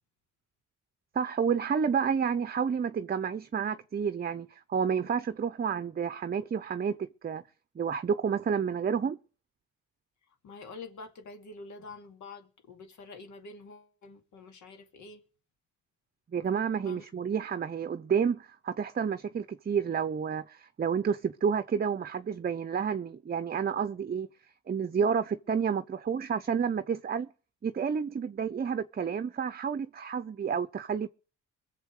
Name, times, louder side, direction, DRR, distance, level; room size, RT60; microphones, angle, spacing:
voice 1, 1.1-7.4 7.8-9.2 16.3-24.3 24.7-27.3 27.6-31.1, right 7 dB, 30° right, 0.7 m, -30 dB
voice 2, 10.4-15.2 16.8-17.0, left 3 dB, 75° left, 2.5 m, -47 dB
22.5 x 7.5 x 4.9 m
cardioid pair, 90°, 30 cm